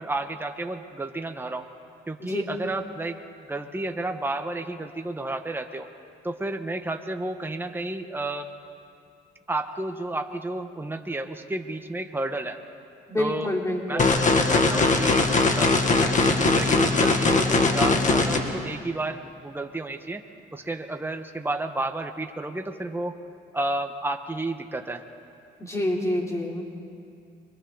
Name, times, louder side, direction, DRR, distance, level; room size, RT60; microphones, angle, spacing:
voice 1, 0.0-1.7 2.1-3.2 3.5-5.9 6.2-8.5 9.5-12.6 13.2-13.5 13.9-15.8 16.3-20.2 20.5-23.1 23.5-25.0, right 2 dB, 10° right, 5 dB, 1.3 m, -31 dB
voice 2, 13.1-14.1 25.6-26.6, left 1 dB, 15° left, -1 dB, 3.4 m, -27 dB
sound 1, 14.0-18.4, left 3 dB, 40° left, 2.0 m, -20 dB
30.0 x 23.5 x 4.0 m, 2.5 s
cardioid pair, 90°, 20 cm